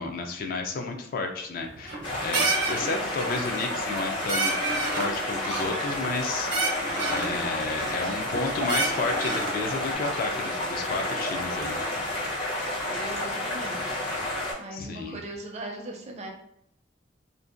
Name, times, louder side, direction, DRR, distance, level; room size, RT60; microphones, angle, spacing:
voice 1, 0.0-4.6 5.0-11.8 14.7-15.2, left 3 dB, 50° left, 4 dB, 0.3 m, -32 dB
sound 1, 1.6-2.1 2.3-2.9 3.2-3.6 3.9-4.0 4.3-5.1 5.4-6.2 6.5-7.3 7.8-8.4 8.7-9.6, right 3 dB, 85° right, 0.6 m, -29 dB
sound 2, 2.0-14.5, left 1 dB, 75° left, 1.3 m, -30 dB
voice 2, 12.9-13.8 14.6-16.3, right 2 dB, 40° right, 1 dB, 0.4 m, -39 dB
2.6 x 2.1 x 2.4 m, 0.74 s
head